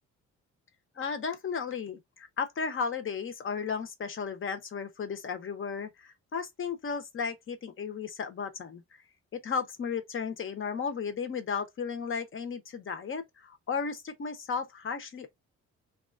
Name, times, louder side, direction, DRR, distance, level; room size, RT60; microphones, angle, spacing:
voice 1, 0.9-9.0 9.3-15.3, left 6 dB, 45° left, 0.9 m, -34 dB
2.9 x 2.4 x 2.5 m
cardioid pair, 90°, 30 cm